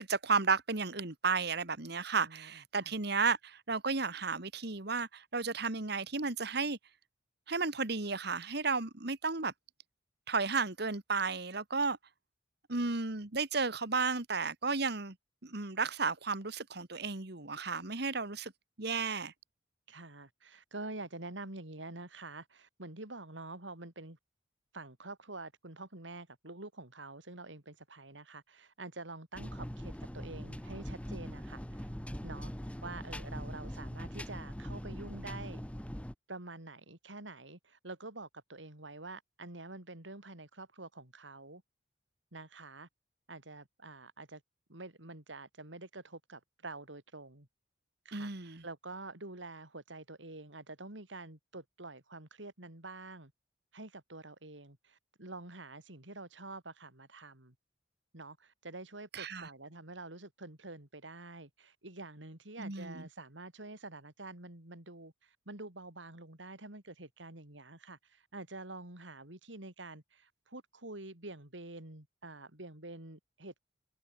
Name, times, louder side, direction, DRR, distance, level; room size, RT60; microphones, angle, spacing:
voice 1, 0.0-6.8 7.5-9.5 10.3-12.0 12.7-15.2 15.4-18.5 18.8-19.3 48.1-48.6 59.1-59.5 62.6-63.1, right 4 dB, 60° right, 2.1 m, -33 dB
voice 2, 2.1-2.9 19.9-24.2 24.7-31.9 32.2-32.5 32.8-35.6 36.3-41.6 42.3-42.9 43.3-44.4 44.7-47.5 48.0-53.3 53.7-57.5 58.1-73.6, right 2 dB, 85° right, 4.4 m, -47 dB
sound 1, 29.3-36.1, equal, 5° left, 1.3 m, -42 dB
head